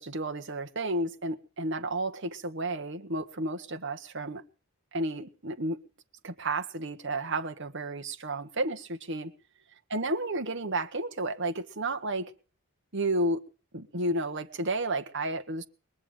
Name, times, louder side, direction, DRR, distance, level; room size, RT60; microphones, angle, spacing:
voice 1, 0.0-4.4 4.9-5.8 6.2-9.3 9.9-12.3 12.9-13.4 13.7-15.6, right 2 dB, 55° right, 1.5 m, -32 dB
22.0 x 7.3 x 8.9 m
head